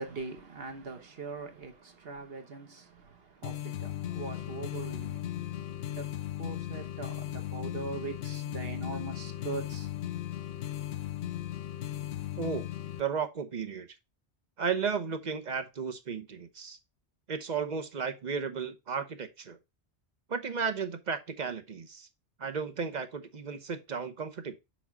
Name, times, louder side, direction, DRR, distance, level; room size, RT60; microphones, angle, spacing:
voice 1, 0.0-6.1 6.3-9.9, right 4 dB, 60° right, 1.4 m, -41 dB
sound 1, 3.4-13.0, left 12 dB, 70° left, 0.8 m, -37 dB
voice 2, 12.4-12.7 13.0-13.9 14.6-16.8 17.3-19.6 20.3-22.1 22.4-24.6, right 6 dB, 45° right, 0.9 m, -34 dB
6.1 x 3.8 x 5.9 m
omnidirectional pair, 1.1 m